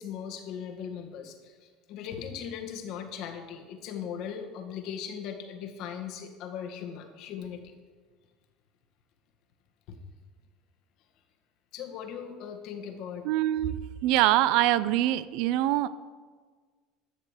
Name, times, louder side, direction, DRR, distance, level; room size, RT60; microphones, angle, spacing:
voice 1, 0.0-7.7 9.9-10.0 11.7-13.3, left 8 dB, 65° left, 4 dB, 1.7 m, -39 dB
voice 2, 13.2-15.9, right 14 dB, 70° right, 17 dB, 0.5 m, -24 dB
11.5 x 6.7 x 6.6 m, 1.5 s
supercardioid pair, 95°, 0 cm